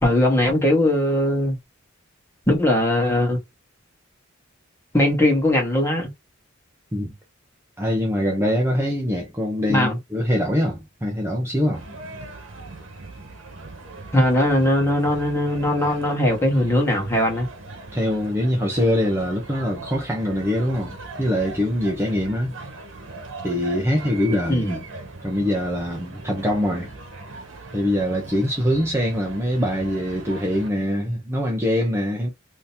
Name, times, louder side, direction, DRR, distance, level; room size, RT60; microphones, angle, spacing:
voice 1, 0.0-1.6 2.5-3.4 4.9-6.1 9.7-9.9 14.1-17.5 24.5-24.8, left 1 dB, 15° left, 1.3 m, -20 dB
voice 2, 7.8-11.8 17.9-22.5 23.4-24.7 25.2-26.9 27.7-32.3, equal, 10° right, 0.6 m, -23 dB
sound 1, 11.7-30.7, right 2 dB, 65° right, 1.2 m, -39 dB
3.7 x 2.8 x 2.6 m
head